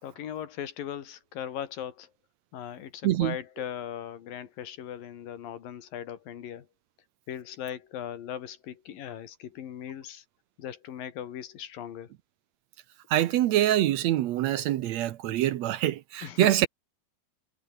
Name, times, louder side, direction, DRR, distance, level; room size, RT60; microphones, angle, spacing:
voice 1, 0.0-2.1 2.5-6.7 7.3-10.3 10.6-12.1 16.2-16.5, left 10 dB, 75° left, 3.9 m, -38 dB
voice 2, 3.0-3.4 13.1-16.7, right 13 dB, 75° right, 1.6 m, -25 dB
omnidirectional pair, 4.1 m